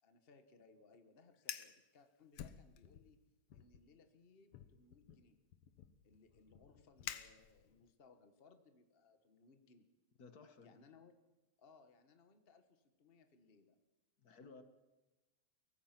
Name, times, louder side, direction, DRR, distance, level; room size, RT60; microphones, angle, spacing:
voice 1, 0.0-3.2 3.5-5.4 6.0-9.9 10.6-11.2 11.6-13.8, left 4 dB, 85° left, 9 dB, 0.5 m, -66 dB
Fire, 1.3-1.8 2.3-3.1 3.5-3.8 4.5-7.9, left 10 dB, 65° left, 1.6 m, -50 dB
voice 2, 10.2-10.7 14.2-14.6, left 4 dB, 45° left, 9 dB, 1.3 m, -57 dB
23.0 x 19.0 x 6.0 m, 1.1 s
omnidirectional pair, 3.4 m